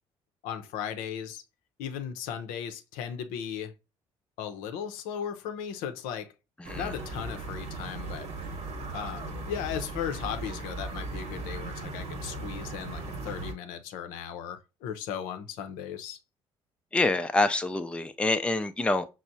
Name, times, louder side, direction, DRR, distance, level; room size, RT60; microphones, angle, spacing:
voice 1, 0.4-1.4 1.8-3.7 4.4-6.3 6.7-8.3 8.9-16.2, left 8 dB, 70° left, 0.6 m, -36 dB
sound 1, 6.6-13.5, right 3 dB, 50° right, 1.0 m, -37 dB
voice 2, 16.9-19.0, left 2 dB, 10° left, 0.4 m, -26 dB
6.0 x 2.0 x 2.6 m
hypercardioid pair, 55°, 14 cm